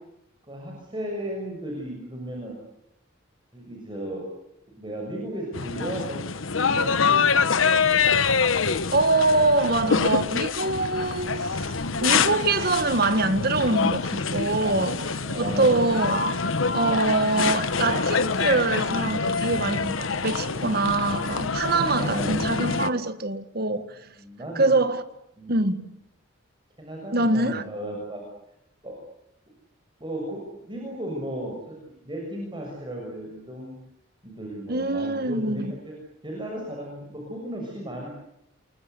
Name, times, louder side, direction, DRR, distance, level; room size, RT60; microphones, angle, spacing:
voice 1, 0.5-2.6 3.5-4.3 4.7-6.2 6.5-7.8 14.5-14.7 15.2-15.8 21.4-22.4 24.1-24.8 25.4-25.7 26.8-28.2 28.8-29.0 30.0-30.4 30.7-31.7 32.0-33.7 34.2-35.9 36.2-38.1, equal, 25° right, 6.7 m, -35 dB
sound 1, 5.5-22.9, left 5 dB, 80° left, 1.1 m, -25 dB
sound 2, 7.7-22.6, equal, 10° left, 5.0 m, -50 dB
voice 2, 8.9-11.7 12.0-15.0 15.3-16.4 16.7-23.8 24.5-25.0 25.5-25.8 27.1-27.6 34.7-35.7, right 2 dB, 50° right, 1.7 m, -24 dB
sound 3, 10.9-22.7, right 2 dB, 85° right, 2.6 m, -47 dB
29.0 x 23.5 x 8.3 m
head